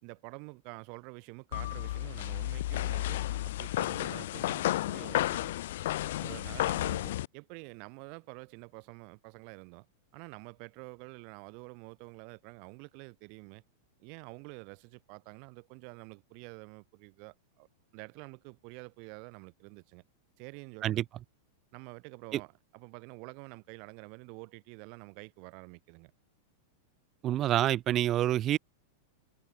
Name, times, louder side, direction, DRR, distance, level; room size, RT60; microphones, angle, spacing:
voice 1, 0.0-5.5 6.2-9.9 10.1-13.6 14.0-17.7 17.9-20.0 20.4-21.0 21.7-26.1, right 39 dB, 50° right, 3.6 m, -48 dB
sound 1, 1.5-7.3, left 15 dB, 70° left, 0.5 m, -32 dB
voice 2, 27.2-28.6, right 12 dB, 30° right, 0.7 m, -27 dB
supercardioid pair, 135°, 0 cm